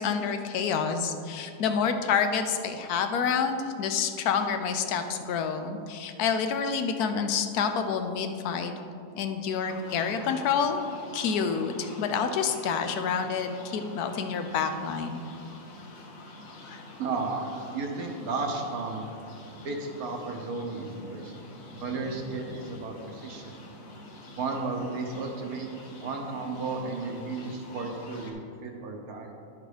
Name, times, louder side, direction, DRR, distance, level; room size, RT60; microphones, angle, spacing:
voice 1, 0.0-8.7 9.1-10.9 11.1-15.2 16.7-16.8, left 6 dB, 80° left, 7 dB, 1.2 m, -28 dB
sound 1, 9.7-28.3, left 2 dB, 65° left, 1.4 m, -46 dB
voice 2, 17.0-17.4 17.7-19.0 19.6-21.3 21.8-23.6 24.4-25.7 26.0-29.3, right 3 dB, 75° right, 2 dB, 1.5 m, -33 dB
10.5 x 5.3 x 4.9 m, 2.5 s
omnidirectional pair, 1.6 m